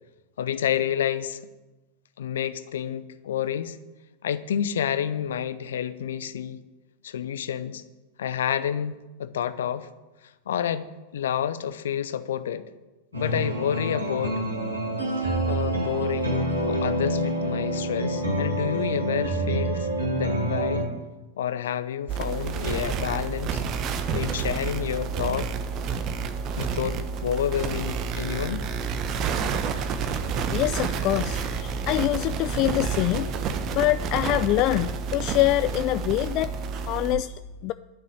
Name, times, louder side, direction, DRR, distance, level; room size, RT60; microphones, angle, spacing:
voice 1, 0.4-1.4 2.2-3.8 4.2-6.6 7.0-7.8 8.2-9.9 10.2-10.9 11.1-12.6 13.1-14.4 15.2-19.9 20.2-20.9 21.4-23.6 24.1-25.5 26.6-28.6, left 9 dB, 60° left, 13 dB, 0.8 m, -29 dB
sound 1, 13.1-20.8, right 1 dB, 80° right, 5.5 m, -27 dB
sound 2, 22.1-37.2, right 5 dB, 35° right, 1.1 m, -29 dB
voice 2, 30.5-33.3 33.7-37.3 37.6-37.7, left 17 dB, 40° left, 13 dB, 0.3 m, -25 dB
11.5 x 6.7 x 9.3 m, 1.1 s
figure-of-eight pair, 90°, 0 cm